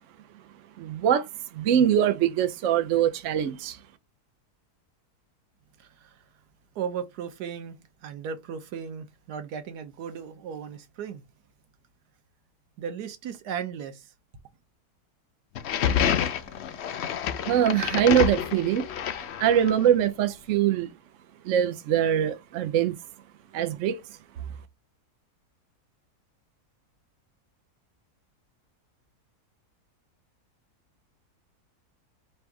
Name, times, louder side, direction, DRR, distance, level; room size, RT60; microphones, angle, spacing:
voice 1, 0.8-3.8 17.4-18.9 19.4-20.9 21.4-23.0 23.5-24.0, right 9 dB, 60° right, 0.8 m, -23 dB
voice 2, 5.8-6.2 6.7-11.2 12.8-14.1, right 7 dB, 80° right, 1.3 m, -36 dB
sound 1, 15.5-19.9, left 9 dB, 75° left, 0.6 m, -28 dB
3.4 x 2.6 x 4.6 m
omnidirectional pair, 1.7 m